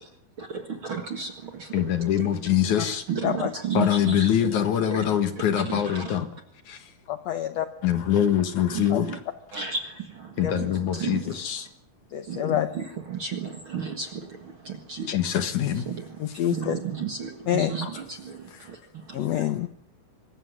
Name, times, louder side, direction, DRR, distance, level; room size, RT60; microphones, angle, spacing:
voice 1, 0.4-1.7 2.2-2.3 2.8-4.5 4.9-5.0 5.7-6.2 8.7-9.2 9.5-11.2 12.3-15.1 15.9-16.0 16.5-18.8 19.1-19.5, right 6 dB, 45° right, 6 dB, 1.8 m, -33 dB
voice 2, 1.7-3.0 3.7-6.3 6.7-6.8 7.8-9.1 10.4-11.7 15.1-15.8 16.6-16.7 17.8-17.9, left 10 dB, 60° left, 9 dB, 2.6 m, -24 dB
voice 3, 7.1-7.7 8.9-9.0 10.4-10.5 12.1-12.7 16.2-16.8 17.5-17.7 19.1-19.7, left 11 dB, 80° left, 10 dB, 1.5 m, -26 dB
24.5 x 14.0 x 9.7 m, 0.68 s
omnidirectional pair, 4.4 m